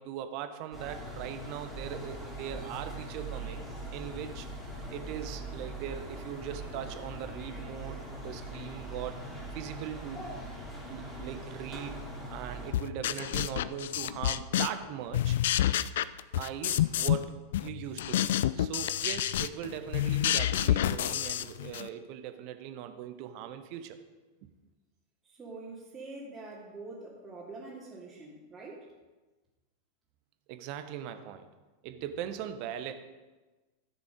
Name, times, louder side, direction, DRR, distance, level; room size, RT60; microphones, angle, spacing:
voice 1, 0.0-3.6 3.9-4.5 4.9-9.2 9.5-10.3 10.9-12.0 12.3-15.4 16.3-24.0 24.4-24.5 30.5-31.5 31.8-32.9, right 10 dB, 45° right, 8 dB, 1.0 m, -40 dB
sound 1, 0.7-12.7, right 1 dB, 10° left, 3.0 m, -41 dB
sound 2, 12.7-14.9 15.1-17.3 17.5-21.9, left 12 dB, 55° left, 0.3 m, -29 dB
voice 2, 25.3-28.9, right 3 dB, 15° right, -7 dB, 2.5 m, -45 dB
14.0 x 6.5 x 5.2 m, 1.2 s
figure-of-eight pair, 90°, 0 cm